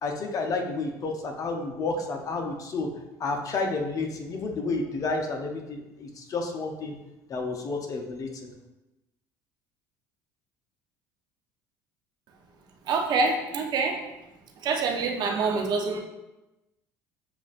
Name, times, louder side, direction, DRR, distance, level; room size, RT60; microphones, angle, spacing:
voice 1, 0.0-2.9 3.2-7.0 7.3-8.3, left 3 dB, 40° left, 3 dB, 0.7 m, -30 dB
voice 2, 12.9-14.0 14.6-16.0, right 4 dB, 55° right, 2 dB, 0.7 m, -26 dB
7.0 x 2.4 x 2.5 m, 0.98 s
supercardioid pair, 85°, 9 cm